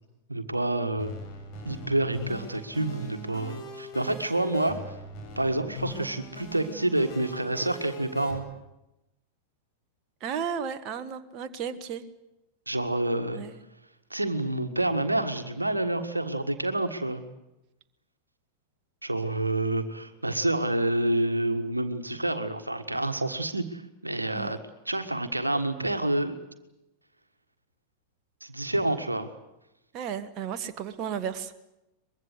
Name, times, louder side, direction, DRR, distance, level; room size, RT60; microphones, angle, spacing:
voice 1, 0.3-1.1 1.7-4.8 5.4-8.5 12.7-13.4 14.1-17.2 19.0-24.6 24.9-26.4 28.4-29.3, right 1 dB, 85° right, 8 dB, 1.6 m, -28 dB
sound 1, 1.0-8.4, left 1 dB, 40° left, 7.6 m, -41 dB
voice 2, 10.2-12.0 13.3-13.6 24.3-24.6 29.9-31.5, right 7 dB, 35° right, 8 dB, 1.4 m, -34 dB
23.5 x 22.0 x 8.1 m, 0.94 s
figure-of-eight pair, 90°, 0 cm